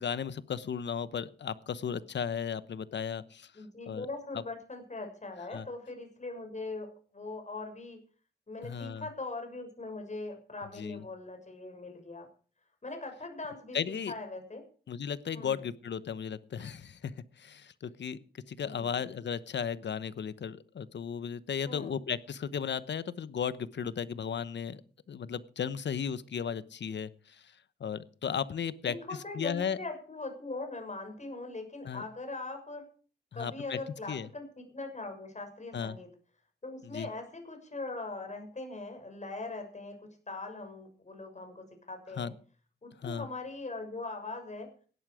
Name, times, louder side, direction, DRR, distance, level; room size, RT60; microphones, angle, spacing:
voice 1, 0.0-3.5 3.9-4.1 5.5-5.6 8.6-9.0 10.8-11.0 13.7-14.1 14.9-24.8 25.1-27.5 27.8-28.9 29.3-29.8 31.8-32.0 33.3-33.8 34.1-34.3 35.7-36.0 36.9-37.1 42.2-42.3 43.0-43.3, left 7 dB, 80° left, 16 dB, 1.0 m, -35 dB
voice 2, 3.5-6.9 7.1-8.0 8.5-12.3 12.8-14.6 15.3-15.7 18.6-19.0 21.7-21.9 28.8-32.8 33.3-36.1 36.6-42.3 42.8-44.7, left 3 dB, 40° left, 5 dB, 6.5 m, -41 dB
16.5 x 11.5 x 4.9 m, 0.41 s
cardioid pair, 65°, 18 cm